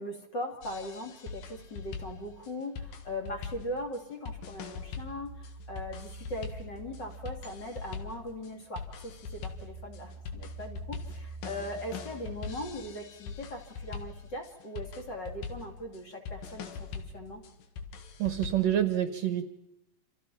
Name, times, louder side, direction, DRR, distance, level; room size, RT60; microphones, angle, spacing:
voice 1, 0.0-17.5, left 1 dB, 35° left, 2 dB, 2.6 m, -40 dB
sound 1, 0.6-18.8, left 5 dB, 90° left, 3.5 m, -42 dB
sound 2, 4.5-8.4 8.8-13.3, right 3 dB, 15° right, 2.3 m, -47 dB
voice 2, 18.2-19.5, right 11 dB, 65° right, 9 dB, 2.0 m, -27 dB
29.0 x 27.5 x 5.8 m, 0.86 s
omnidirectional pair, 3.9 m